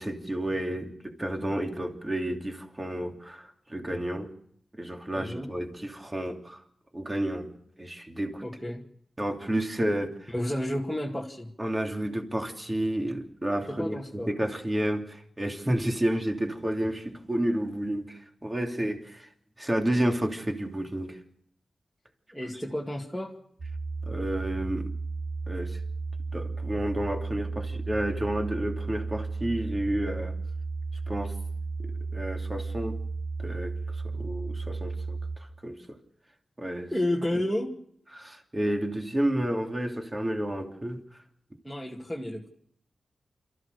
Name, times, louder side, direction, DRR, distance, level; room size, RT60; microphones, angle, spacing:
voice 1, 0.0-4.3 4.8-6.6 6.9-7.5 7.8-8.4 9.2-10.3 11.6-19.3 19.6-21.2 22.5-22.6 24.1-24.9 25.5-25.8 26.3-30.4 31.1-31.4 31.8-33.0 33.4-36.0 36.6-36.9 38.1-41.2, right 1 dB, 20° right, 2 dB, 3.0 m, -31 dB
voice 2, 5.2-5.5 8.4-8.8 10.3-11.5 13.7-14.3 22.3-23.4 36.9-37.8 41.6-42.5, left 1 dB, ahead, -4 dB, 2.3 m, -31 dB
sound 1, 23.6-35.4, right 4 dB, 65° right, 5.3 m, -34 dB
28.5 x 14.5 x 6.7 m, 0.69 s
wide cardioid pair, 115°, 0 cm